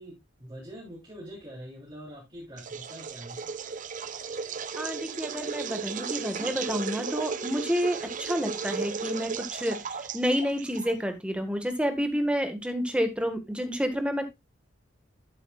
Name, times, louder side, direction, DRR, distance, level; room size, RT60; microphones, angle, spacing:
voice 1, 0.0-3.5, equal, 25° right, -5 dB, 3.7 m, -44 dB
sound 1, 2.6-11.1, right 5 dB, 40° right, 0.7 m, -35 dB
voice 2, 4.8-9.8 10.1-14.3, equal, 5° right, 7 dB, 1.6 m, -29 dB
12.0 x 8.1 x 2.4 m, 0.20 s
head